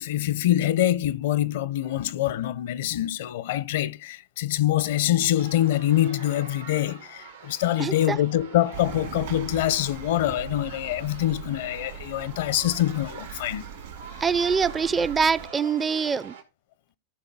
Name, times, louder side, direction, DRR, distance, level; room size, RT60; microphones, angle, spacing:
voice 1, 0.0-13.7, left 13 dB, 65° left, 0.6 m, -25 dB
sound 1, 5.4-16.4, right 5 dB, 90° right, 2.2 m, -45 dB
voice 2, 7.8-8.2 14.2-16.3, right 5 dB, 20° right, 0.4 m, -24 dB
sound 2, 8.7-15.5, right 8 dB, 70° right, 3.0 m, -40 dB
14.5 x 5.5 x 3.6 m
hypercardioid pair, 100°, 0 cm